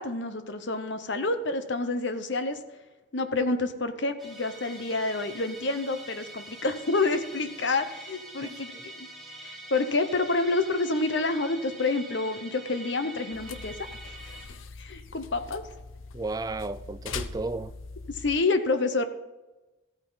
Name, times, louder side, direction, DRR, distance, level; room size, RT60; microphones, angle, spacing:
voice 1, 0.0-2.6 3.1-8.7 9.0-9.1 9.4-13.7 14.0-14.1 14.8-15.6 18.1-19.0, left 3 dB, 60° left, 0.9 m, -28 dB
Musical instrument, 4.2-14.5, right 1 dB, ahead, 2.2 m, -45 dB
voice 2, 8.4-8.8 16.1-17.7, right 3 dB, 20° right, 0.3 m, -34 dB
sound 1, 13.3-18.4, left 4 dB, 85° left, 0.7 m, -41 dB
14.5 x 8.9 x 4.0 m
head